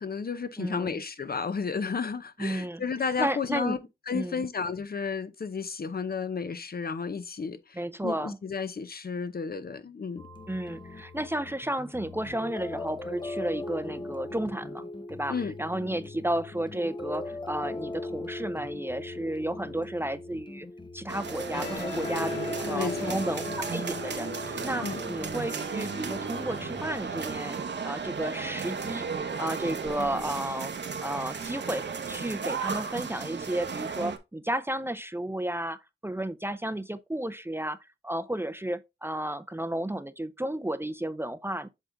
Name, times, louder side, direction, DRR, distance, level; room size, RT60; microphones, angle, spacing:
voice 1, 0.0-3.8 4.1-10.2 15.3-15.5 22.7-23.2 24.8-25.0, left 5 dB, 55° left, 0.8 m, -32 dB
voice 2, 0.6-1.0 2.4-3.8 4.1-4.5 7.8-8.4 10.5-20.7 20.9-30.7 31.0-37.8 38.0-41.7, right 1 dB, 10° right, 0.6 m, -33 dB
sound 1, 10.2-27.0, left 2 dB, 25° left, 0.7 m, -39 dB
sound 2, 21.1-34.2, right 5 dB, 70° right, 1.0 m, -35 dB
sound 3, 21.3-28.4, left 2 dB, 75° left, 4.2 m, -43 dB
7.6 x 3.6 x 3.8 m
cardioid pair, 55°, 19 cm